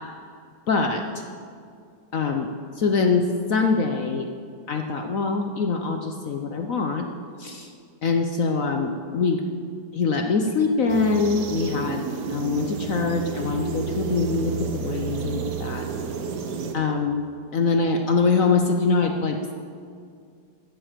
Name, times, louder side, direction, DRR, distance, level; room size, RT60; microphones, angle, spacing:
voice 1, 0.7-1.2 2.1-2.5 2.8-4.3 4.7-7.0 7.4-7.7 8.0-9.4 9.9-12.0 12.3-15.9 16.7-17.2 17.5-19.5, left 4 dB, 55° left, 4 dB, 1.0 m, -23 dB
sound 1, 10.9-16.7, right 6 dB, 60° right, 1.6 m, -30 dB
15.0 x 13.5 x 5.1 m, 2.3 s
omnidirectional pair, 2.0 m